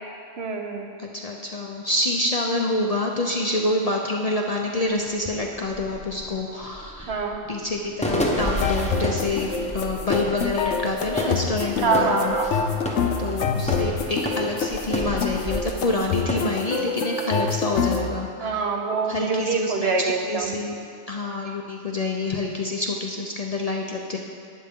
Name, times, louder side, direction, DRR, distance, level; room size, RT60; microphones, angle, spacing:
voice 1, 0.4-0.9 7.1-7.4 11.8-13.0 18.4-20.5, right 4 dB, 65° right, 3 dB, 1.1 m, -25 dB
voice 2, 1.0-7.1 7.5-12.6 13.2-18.7 19.0-20.7 21.1-24.2, left 2 dB, 40° left, 0 dB, 0.6 m, -27 dB
sound 1, 4.6-4.7 5.0-16.5, equal, 5° left, 0.8 m, -31 dB
sound 2, 8.4-18.0, left 5 dB, 80° left, 1.0 m, -27 dB
11.5 x 8.7 x 3.7 m, 2.3 s
omnidirectional pair, 1.2 m